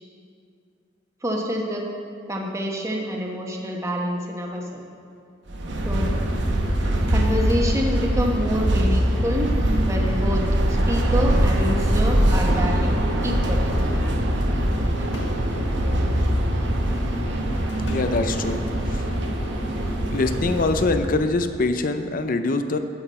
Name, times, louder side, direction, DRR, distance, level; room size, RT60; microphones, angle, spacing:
voice 1, 1.2-1.8 2.3-4.8 5.8-6.1 7.1-9.5 9.9-13.7, equal, 15° right, -1 dB, 1.1 m, -27 dB
sound 1, 5.0-5.6 6.0-6.3 6.6-8.2 8.9-9.0 9.5-9.6 10.5-10.7 11.2-12.6 14.2-15.6 16.7-19.0, left 1 dB, 75° left, 1.7 m, -43 dB
sound 2, 5.5-21.2, equal, 70° right, 0.9 m, -22 dB
sound 3, 5.7-19.9, right 1 dB, 40° right, 1.8 m, -37 dB
voice 2, 17.9-19.0 20.1-22.8, left 3 dB, 50° left, 9 dB, 0.5 m, -24 dB
11.0 x 6.8 x 4.2 m, 2.4 s
head